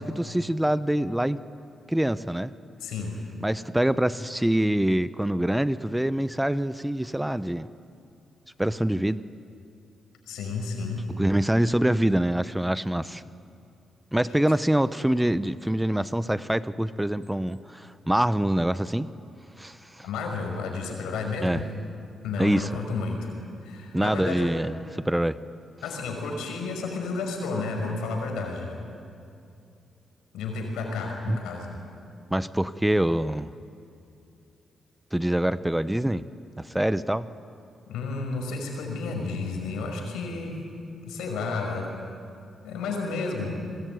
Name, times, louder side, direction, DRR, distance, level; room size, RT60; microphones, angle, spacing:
voice 1, 0.0-1.4 1.9-2.5 3.4-7.7 8.6-9.2 11.2-13.2 14.1-19.1 19.6-20.1 21.4-21.6 22.4-22.7 23.9-25.4 31.3-31.4 32.3-33.5 35.1-36.2 36.6-37.3, right 1 dB, 5° right, 14 dB, 0.9 m, -25 dB
voice 2, 2.8-3.2 10.3-11.0 20.0-21.7 22.2-23.3 23.6-24.5 25.8-28.7 30.3-31.8 37.9-40.5 41.1-41.9 42.6-43.6, left 4 dB, 85° left, 2 dB, 6.1 m, -31 dB
28.0 x 21.0 x 9.7 m, 2.6 s
supercardioid pair, 60°, 0 cm